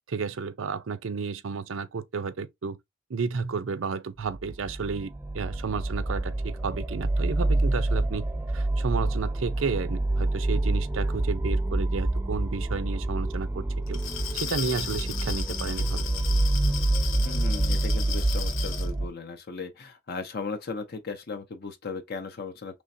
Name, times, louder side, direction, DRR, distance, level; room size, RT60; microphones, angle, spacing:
voice 1, 0.1-2.8 3.1-8.3 8.5-14.0 14.3-16.1, right 5 dB, 70° right, 0.5 m, -32 dB
sound 1, 4.3-19.1, right 2 dB, 10° right, 0.4 m, -27 dB
Glass, 13.9-18.9, left 9 dB, 75° left, 0.9 m, -36 dB
voice 2, 17.3-22.8, left 4 dB, 50° left, 0.6 m, -36 dB
5.1 x 3.2 x 2.7 m
head